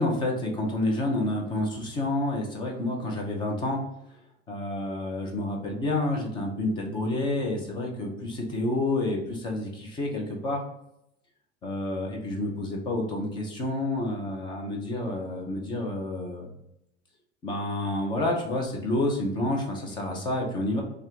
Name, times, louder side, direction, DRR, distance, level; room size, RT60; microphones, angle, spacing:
voice 1, 0.0-3.8 4.5-10.6 11.6-16.5 17.4-20.8, left 2 dB, 15° left, 1 dB, 0.4 m, -29 dB
3.3 x 2.4 x 4.4 m, 0.81 s
supercardioid pair, 145°, 37 cm